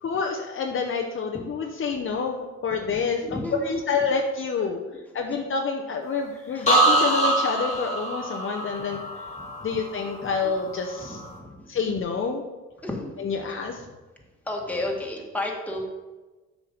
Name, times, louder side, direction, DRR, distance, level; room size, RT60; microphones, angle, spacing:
voice 1, 0.0-4.8 5.1-9.0 9.6-11.2 11.7-12.4 13.2-13.8, left 5 dB, 45° left, 1 dB, 0.7 m, -28 dB
voice 2, 3.2-4.0 6.3-6.7 8.9-9.0 9.3-9.7 11.4-11.5 12.8-13.6 14.4-15.8, left 1 dB, 5° left, -1 dB, 1.7 m, -33 dB
sound 1, 6.7-10.5 10.8-11.3, right 2 dB, 25° left, 1.8 m, -24 dB
7.5 x 6.0 x 3.9 m, 1.2 s
cardioid pair, 90°, 30 cm